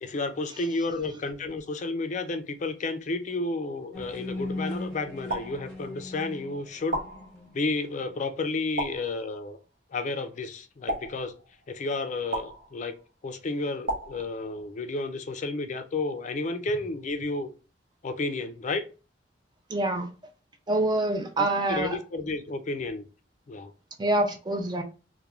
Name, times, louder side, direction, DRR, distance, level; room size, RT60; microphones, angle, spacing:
voice 1, 0.0-7.0 7.5-9.6 9.9-11.3 11.7-12.9 13.2-17.5 18.0-18.8 21.4-23.1 23.5-23.7, left 3 dB, 45° left, 0.4 m, -31 dB
sound 1, 3.9-8.8, left 2 dB, 5° left, 0.9 m, -39 dB
sound 2, 5.3-6.2 6.9-7.8 8.8-9.6 10.9-11.8 12.3-13.1 13.9-14.9, right 1 dB, 75° right, 0.8 m, -36 dB
voice 2, 19.7-20.1 20.7-22.0 24.0-24.8, right 2 dB, 25° right, 0.5 m, -26 dB
3.0 x 2.1 x 2.3 m
head